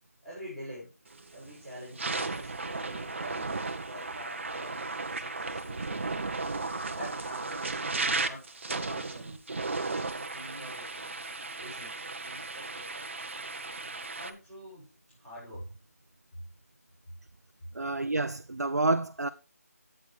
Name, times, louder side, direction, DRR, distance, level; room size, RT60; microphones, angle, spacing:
voice 1, 0.2-0.9 1.3-3.6 3.8-6.0 6.9-9.4 9.9-11.1 11.6-13.1 14.1-15.7, equal, 5° left, 5.2 m, -46 dB
sound 1, 1.1-1.4 1.8-14.3, right 3 dB, 50° right, 0.9 m, -35 dB
voice 2, 17.7-19.3, right 2 dB, 85° right, 0.6 m, -28 dB
11.5 x 8.5 x 3.2 m
figure-of-eight pair, 165°, 9 cm